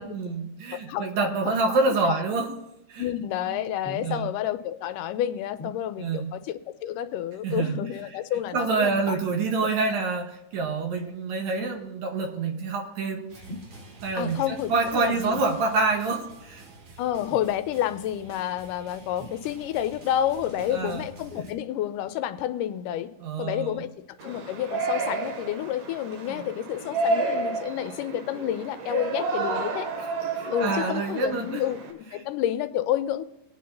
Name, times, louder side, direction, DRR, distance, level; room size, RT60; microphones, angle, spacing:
voice 1, 0.0-2.5 2.9-3.0 3.5-3.6 4.0-4.3 6.0-6.3 7.4-7.7 8.5-13.3 14.0-16.7 20.7-21.0 23.2-23.8 26.3-26.5 30.3-31.6 32.2-32.3, right 4 dB, 65° right, 3 dB, 2.5 m, -27 dB
voice 2, 0.7-1.8 2.0-2.2 3.0-9.2 9.6-10.0 14.2-15.4 17.0-23.1 23.4-23.9 24.2-29.9 30.5-33.2, left 11 dB, 90° left, 11 dB, 2.2 m, -30 dB
sound 1, 3.8-4.2 5.6-5.8 7.7-8.1 9.5-9.8 11.6-11.8 13.5-13.7 15.3-15.5 17.2-17.5 19.2-19.8 21.3-21.6 22.4-22.5, left 1 dB, 30° left, 1.5 m, -40 dB
sound 2, 13.3-21.5, right 2 dB, 50° right, 2.7 m, -48 dB
Yell, 24.2-31.9, right 3 dB, 85° right, 3.4 m, -30 dB
20.0 x 9.4 x 2.7 m, 0.85 s
omnidirectional pair, 3.7 m